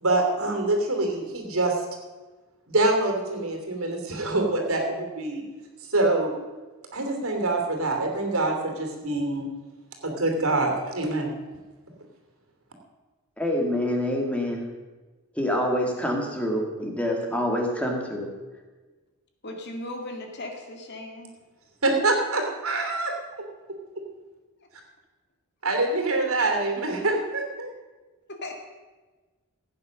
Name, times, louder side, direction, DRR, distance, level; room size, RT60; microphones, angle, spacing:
voice 1, 0.0-1.8 2.7-5.4 5.9-6.3 6.9-9.5 10.0-11.3 21.8-23.4 25.6-27.7, right 2 dB, 70° right, 3 dB, 2.9 m, -25 dB
voice 2, 13.4-14.6 15.4-18.3, left 1 dB, 5° left, 1 dB, 2.2 m, -26 dB
voice 3, 19.4-21.3 28.3-28.5, left 1 dB, 50° left, 3 dB, 2.2 m, -37 dB
16.0 x 9.2 x 6.4 m, 1.3 s
head